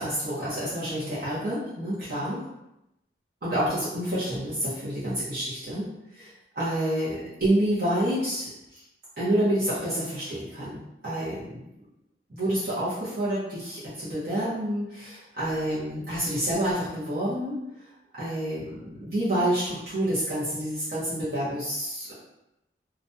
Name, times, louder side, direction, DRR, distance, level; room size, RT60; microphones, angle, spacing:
voice 1, 0.0-2.4 3.4-5.9 6.2-8.8 9.2-10.8 11.0-11.6 12.3-17.6 18.1-22.1, right 1 dB, 55° right, -11 dB, 0.8 m, -28 dB
2.4 x 2.1 x 2.6 m, 0.88 s
head